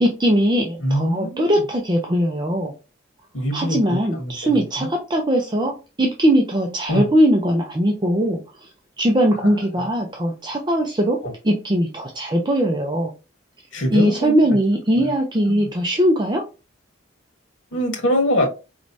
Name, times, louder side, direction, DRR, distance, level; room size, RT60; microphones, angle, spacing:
voice 1, 0.0-2.7 3.5-5.7 6.0-8.7 9.0-11.2 11.4-13.1 13.9-16.4, equal, 25° right, 0.6 m, -20 dB
voice 2, 0.8-1.5 3.3-4.9 6.9-7.0 9.4-9.5 11.2-11.3 13.7-14.3 14.9-15.1 15.5-15.7 17.7-18.5, equal, 80° left, 1.5 m, -24 dB
4.8 x 3.1 x 2.6 m
head